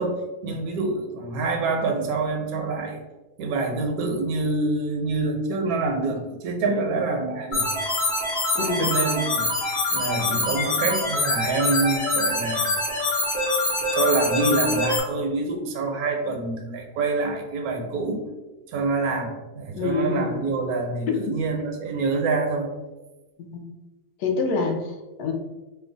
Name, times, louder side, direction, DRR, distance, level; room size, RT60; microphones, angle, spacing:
voice 1, 0.0-3.0 3.4-7.7 8.6-12.7 13.9-18.2 18.7-22.7, right 3 dB, 75° right, 3 dB, 1.0 m, -26 dB
voice 2, 6.7-7.0 8.5-8.9 19.7-20.3 23.4-23.6 24.2-25.3, left 4 dB, 85° left, 2 dB, 1.1 m, -27 dB
sound 1, 7.5-15.0, left 2 dB, 60° left, 1.3 m, -25 dB
3.0 x 2.2 x 3.7 m, 1.1 s
omnidirectional pair, 1.6 m